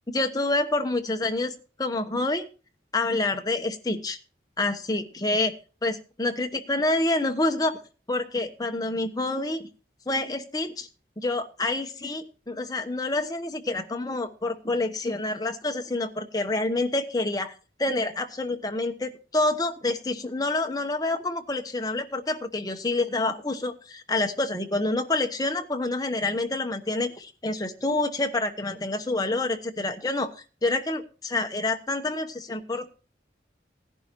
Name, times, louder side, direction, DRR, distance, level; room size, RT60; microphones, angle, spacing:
voice 1, 0.1-2.4 2.9-4.2 4.6-5.5 5.8-7.8 8.1-9.7 10.1-10.9 11.2-17.5 17.8-30.3 30.6-33.0, left 2 dB, 20° left, 6 dB, 1.0 m, -27 dB
17.0 x 11.0 x 3.0 m, 0.35 s
head